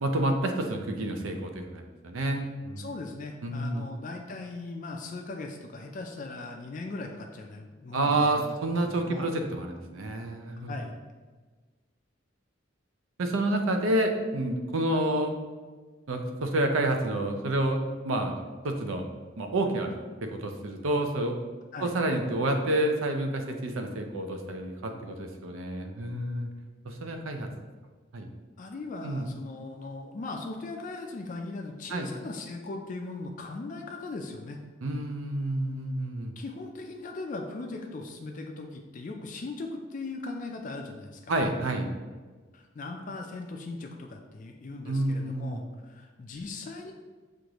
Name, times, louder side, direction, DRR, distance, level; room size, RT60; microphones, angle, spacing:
voice 1, 0.0-2.9 3.4-3.8 7.9-10.7 13.2-15.4 16.1-18.3 18.6-19.1 19.4-19.9 20.2-21.3 21.8-26.5 26.8-27.5 28.1-28.3 29.0-29.3 31.9-32.1 34.8-36.3 41.3-41.9 44.9-45.6, right 1 dB, 90° right, 5 dB, 0.5 m, -29 dB
voice 2, 2.8-8.6 8.8-9.3 10.6-10.9 21.7-22.0 28.6-34.6 36.4-41.3 42.5-46.9, left 3 dB, 40° left, 2 dB, 0.3 m, -39 dB
6.3 x 2.5 x 3.0 m, 1.4 s
head